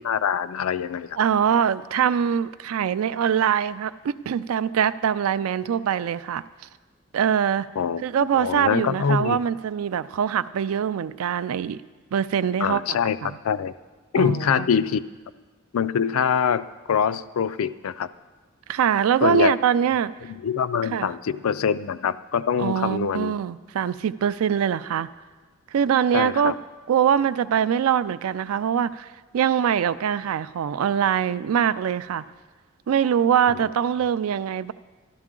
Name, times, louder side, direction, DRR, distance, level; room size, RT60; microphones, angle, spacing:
voice 1, 0.0-1.2 7.8-9.4 12.6-13.2 13.4-13.7 14.1-15.0 15.7-18.1 19.2-19.5 20.2-23.4 26.1-26.5, left 7 dB, 85° left, 14 dB, 0.4 m, -24 dB
voice 2, 1.2-6.4 7.1-7.7 8.0-11.8 12.1-12.8 13.2-13.3 14.2-14.6 18.7-20.1 20.9-21.1 22.6-25.1 25.7-26.5 26.9-29.1 29.3-32.2 32.9-34.7, right 8 dB, 85° right, 15 dB, 0.3 m, -23 dB
12.0 x 12.0 x 3.7 m, 1.3 s
head